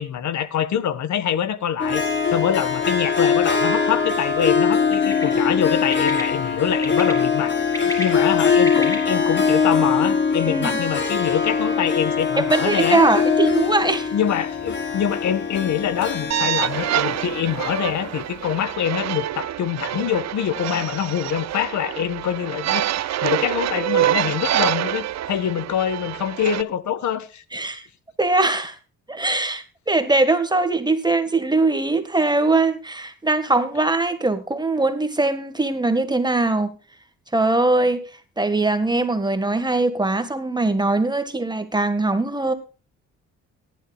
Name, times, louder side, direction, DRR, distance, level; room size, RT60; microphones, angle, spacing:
voice 1, 0.0-2.0 2.3-13.0 14.1-27.4, left 9 dB, 70° left, 1.5 m, -25 dB
Harp, 1.8-18.3, left 5 dB, 40° left, 3.5 m, -22 dB
Bird, 4.9-5.2 5.9-6.2 6.8-7.1 7.6-8.9, equal, 10° left, 5.9 m, -30 dB
voice 2, 12.4-14.1 27.5-27.9 28.2-28.8 29.1-36.7 37.3-38.0 38.4-42.5, right 2 dB, 15° right, 1.8 m, -21 dB
sound 1, 16.3-26.6, right 12 dB, 60° right, 0.7 m, -26 dB
18.5 x 11.5 x 2.4 m
cardioid pair, 90°, 30 cm